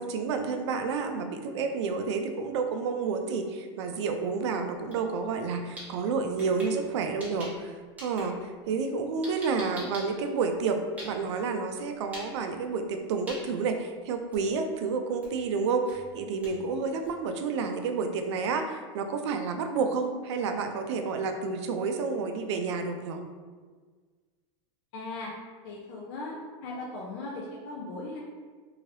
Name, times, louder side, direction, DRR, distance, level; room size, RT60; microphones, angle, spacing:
voice 1, 0.0-7.7 8.0-23.2, right 4 dB, 85° right, 6 dB, 0.4 m, -30 dB
sound 1, 4.9-5.0 5.3-7.7 8.0-11.4 12.0-12.3 12.6-12.9 13.3-13.4 13.9-14.0 14.3-14.7 15.2-15.4 15.9-17.3, equal, 10° right, 0.9 m, -44 dB
voice 2, 24.9-25.3 25.6-26.4 26.6-28.2, left 2 dB, 60° left, -3 dB, 0.5 m, -38 dB
3.1 x 2.7 x 2.7 m, 1.5 s
supercardioid pair, 150°, 14 cm